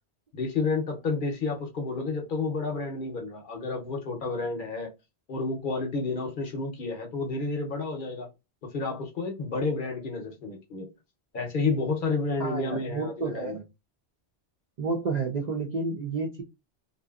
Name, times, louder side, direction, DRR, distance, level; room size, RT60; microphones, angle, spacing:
voice 1, 0.3-4.9 5.3-8.3 8.6-10.9 11.3-13.6, left 3 dB, 55° left, 0.7 m, -30 dB
voice 2, 12.4-13.6 14.8-16.4, right 4 dB, 55° right, 0.5 m, -30 dB
2.6 x 2.5 x 2.3 m
omnidirectional pair, 1.2 m